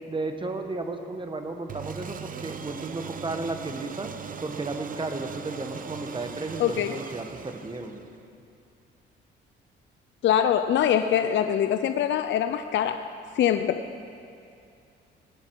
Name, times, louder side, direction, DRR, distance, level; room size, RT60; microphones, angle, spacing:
voice 1, 0.1-8.0, right 3 dB, 25° right, 6 dB, 1.2 m, -34 dB
sound 1, 1.7-8.2, right 6 dB, 45° right, 0.8 m, -39 dB
voice 2, 6.6-6.9 10.2-13.0 13.4-13.8, left 9 dB, 65° left, 9 dB, 0.5 m, -23 dB
18.5 x 10.0 x 4.6 m, 2.5 s
cardioid pair, 90°, 20 cm